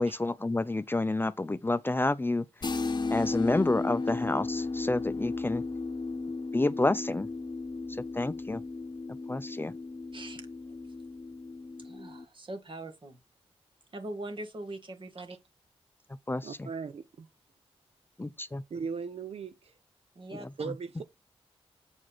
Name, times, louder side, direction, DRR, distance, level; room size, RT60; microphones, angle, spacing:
voice 1, 0.0-2.4 3.1-5.6 6.5-7.3 8.1-8.6 9.3-9.7 16.3-16.7 18.2-18.6, left 2 dB, 20° left, 0.5 m, -29 dB
sound 1, 2.6-12.2, left 3 dB, 40° left, 0.8 m, -35 dB
voice 2, 10.1-10.4 11.8-13.2 13.9-15.4 20.1-20.5, right 2 dB, 50° right, 1.6 m, -41 dB
voice 3, 16.4-17.3 18.7-19.7 20.6-21.0, right 5 dB, 70° right, 0.6 m, -38 dB
7.3 x 4.9 x 4.0 m
cardioid pair, 55°, 11 cm